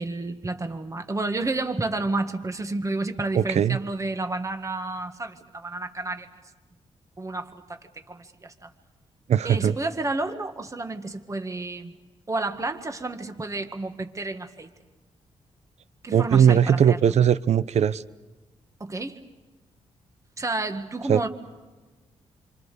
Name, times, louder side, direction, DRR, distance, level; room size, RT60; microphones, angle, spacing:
voice 1, 0.0-6.3 7.2-7.8 8.1-8.7 9.4-12.0 12.3-14.7 16.0-17.0 18.8-19.2 20.4-21.3, right 2 dB, 25° right, 6 dB, 1.9 m, -30 dB
voice 2, 3.3-3.8 9.3-9.7 16.1-18.0 21.1-21.2, right 8 dB, 65° right, 16 dB, 0.8 m, -19 dB
27.5 x 24.5 x 6.9 m, 1.2 s
cardioid pair, 75°, 12 cm